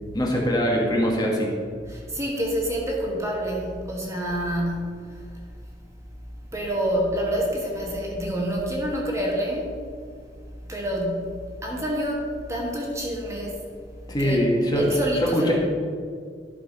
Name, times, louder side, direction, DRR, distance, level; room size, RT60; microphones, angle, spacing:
voice 1, 0.1-1.5 14.1-15.5, equal, 25° left, -2 dB, 1.4 m, -22 dB
voice 2, 1.9-5.4 6.5-9.8 10.7-11.3 11.6-13.6 14.2-14.4 14.8-15.5, equal, 15° right, -2 dB, 1.3 m, -27 dB
11.5 x 4.9 x 5.2 m, 2.1 s
head